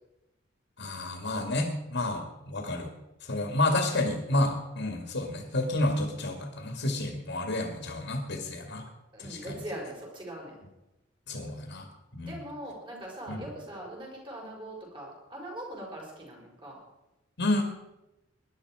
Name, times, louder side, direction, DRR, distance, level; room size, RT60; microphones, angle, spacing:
voice 1, 0.8-2.9 3.3-8.8 9.2-9.6 11.3-11.9 12.1-12.4 13.3-13.4 17.4-17.6, left 2 dB, 60° left, 4 dB, 2.2 m, -30 dB
voice 2, 9.1-10.6 12.2-16.8, right 1 dB, 25° right, -2 dB, 5.7 m, -41 dB
20.0 x 11.0 x 4.9 m, 0.96 s
head